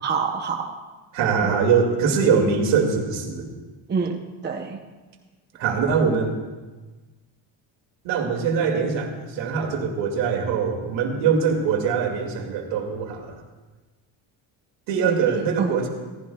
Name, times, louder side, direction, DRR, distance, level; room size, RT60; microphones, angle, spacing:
voice 1, 0.0-0.8 1.4-1.5 3.9-4.8 15.0-15.8, right 5 dB, 25° right, 3 dB, 0.8 m, -27 dB
voice 2, 1.1-3.5 5.6-6.4 8.0-13.4 14.9-15.9, right 6 dB, 70° right, 1 dB, 2.5 m, -22 dB
17.5 x 15.5 x 2.3 m, 1.3 s
cardioid pair, 135°, 44 cm